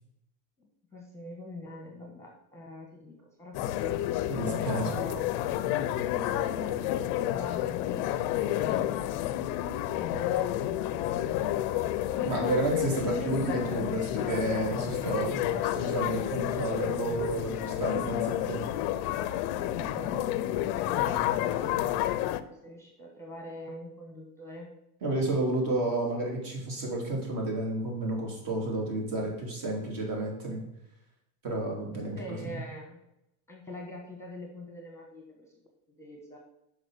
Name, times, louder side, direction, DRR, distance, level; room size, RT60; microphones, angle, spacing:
voice 1, 0.6-4.0 4.5-5.3 5.9-9.3 9.9-12.4 15.0-16.2 19.0-24.7 32.1-33.0 33.5-35.5 36.0-36.4, left 1 dB, 5° left, 0 dB, 1.1 m, -44 dB
sound 1, 3.5-22.4, left 13 dB, 55° left, 0.6 m, -30 dB
voice 2, 4.3-5.0 12.2-15.4 15.7-18.6 25.0-30.6 31.4-32.6, right 2 dB, 45° right, -1 dB, 3.0 m, -31 dB
6.3 x 5.0 x 6.4 m, 0.84 s
supercardioid pair, 135°, 46 cm